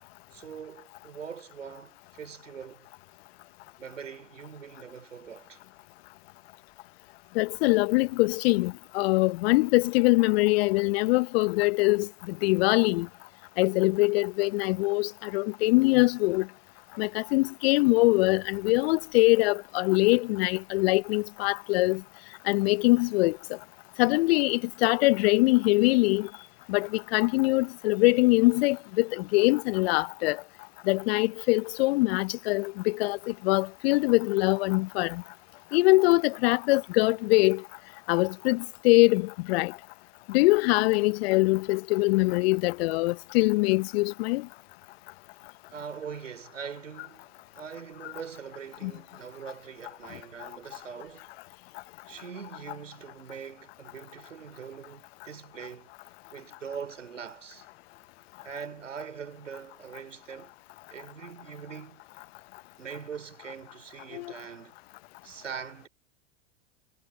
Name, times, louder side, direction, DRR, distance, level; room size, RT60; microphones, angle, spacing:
voice 1, 0.3-2.9 3.8-5.6 45.7-51.3 52.1-55.9 56.3-57.7 58.4-60.5 60.9-62.0 62.8-64.7 65.2-65.9, right 7 dB, 85° right, 3.3 m, -42 dB
voice 2, 7.3-13.1 13.6-16.5 17.0-22.0 22.5-23.6 24.0-26.3 26.7-30.4 30.9-35.2 35.7-37.6 38.1-39.8 40.3-44.5 48.8-48.9 50.4-50.5 64.1-64.3, left 23 dB, 55° left, 0.8 m, -23 dB
figure-of-eight pair, 85°, 36 cm